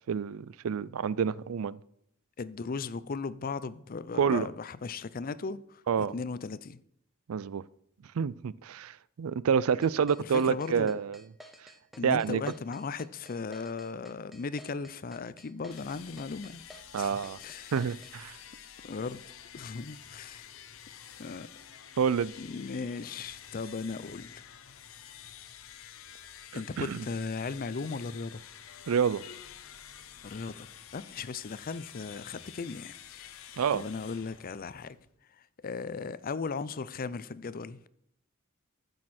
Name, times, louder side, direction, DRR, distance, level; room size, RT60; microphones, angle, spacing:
voice 1, 0.1-1.8 4.1-4.5 5.9-6.1 7.3-7.6 8.2-11.2 12.0-12.4 16.9-17.4 17.7-18.3 22.0-22.3 26.5-27.0 28.9-29.2 33.6-33.8, right 6 dB, 90° right, 0.4 m, -28 dB
voice 2, 2.4-6.8 10.2-10.9 12.0-16.6 17.0-17.7 18.8-19.2 19.5-20.5 21.2-21.5 22.4-24.4 26.5-28.4 30.2-33.5 33.7-35.0 35.6-37.8, left 4 dB, 45° left, 0.5 m, -37 dB
sound 1, 9.8-18.2, equal, ahead, 0.8 m, -52 dB
sound 2, 15.7-35.2, left 9 dB, 70° left, 0.8 m, -49 dB
15.0 x 6.5 x 4.3 m
head